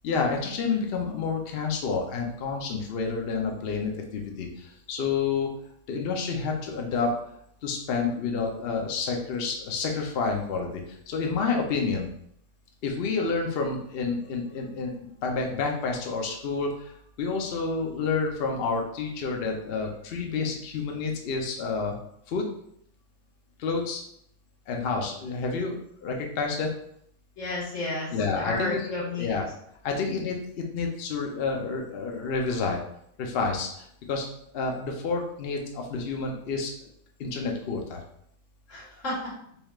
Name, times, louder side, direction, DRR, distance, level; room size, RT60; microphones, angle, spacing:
voice 1, 0.0-5.6 5.9-7.1 7.6-12.1 12.8-14.9 15.2-22.0 22.3-22.5 23.6-24.0 24.7-26.7 28.1-28.9 29.2-29.5 29.8-30.4 30.7-32.8 33.2-34.3 34.5-36.7 37.2-38.0, left 4 dB, 80° left, 1 dB, 0.5 m, -29 dB
voice 2, 27.4-28.1 28.3-29.3 38.7-39.3, left 2 dB, 50° left, -6 dB, 1.7 m, -31 dB
4.1 x 3.4 x 2.3 m, 0.70 s
omnidirectional pair, 1.8 m